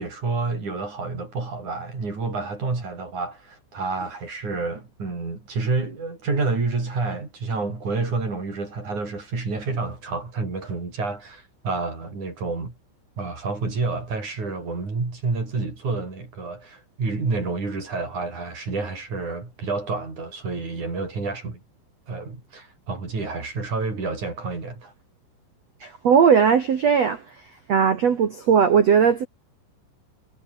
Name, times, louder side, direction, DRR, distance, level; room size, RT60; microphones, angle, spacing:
voice 1, 0.0-12.8 13.2-21.6 22.1-24.9, right 3 dB, 35° right, 8.1 m, -29 dB
voice 2, 25.8-27.2 27.7-29.2, right 7 dB, 80° right, 1.4 m, -18 dB
omnidirectional pair, 6.0 m